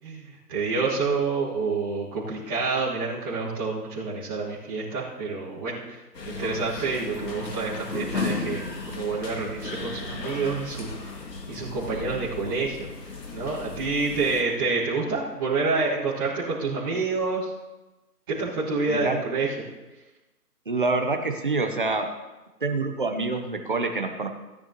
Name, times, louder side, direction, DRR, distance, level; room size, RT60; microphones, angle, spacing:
voice 1, 0.0-10.9 11.5-12.9 13.3-17.5 18.3-19.5, right 4 dB, 15° right, -14 dB, 1.8 m, -28 dB
sound 1, 6.1-14.4, left 4 dB, 90° left, 2.2 m, -35 dB
voice 2, 18.9-19.2 20.7-22.1 22.6-24.3, right 3 dB, 30° right, 5 dB, 0.9 m, -26 dB
16.5 x 10.5 x 3.0 m, 1.1 s
hypercardioid pair, 175°, 48 cm